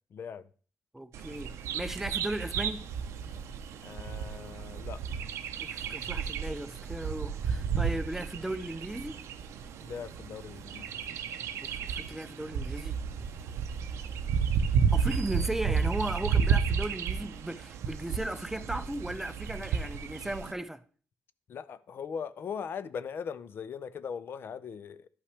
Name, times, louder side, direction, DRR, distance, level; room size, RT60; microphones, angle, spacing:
voice 1, 0.1-0.4 3.8-5.0 9.8-10.9 15.3-15.5 21.5-25.1, left 7 dB, 55° left, 0.4 m, -40 dB
voice 2, 0.9-2.9 5.6-9.2 11.6-13.0 14.9-20.8, right 1 dB, 5° right, 0.4 m, -36 dB
Bird vocalization bird call bird song, 1.1-20.5, right 6 dB, 90° right, 0.6 m, -32 dB
11.0 x 5.6 x 3.3 m
cardioid pair, 110°, 5 cm